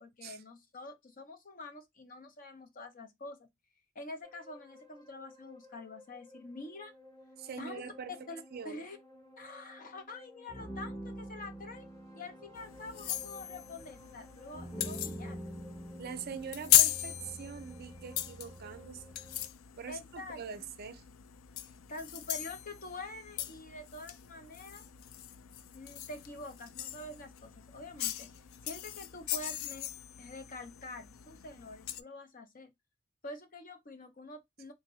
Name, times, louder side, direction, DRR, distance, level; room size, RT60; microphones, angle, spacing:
voice 1, 0.0-3.5 3.9-6.9 7.6-7.8 8.3-9.0 9.4-11.8 12.1-15.4 19.9-20.4 21.9-24.8 25.7-28.3 28.6-29.9 30.2-32.7 33.2-34.7, left 2 dB, 40° left, 0.7 m, -46 dB
sound 1, 4.2-19.5, equal, 15° left, 1.0 m, -48 dB
voice 2, 7.4-8.2 8.5-8.8 16.0-19.0 19.7-21.1, right 6 dB, 50° right, 0.4 m, -43 dB
sound 2, 12.5-32.0, left 12 dB, 75° left, 0.3 m, -37 dB
3.5 x 2.5 x 3.1 m
head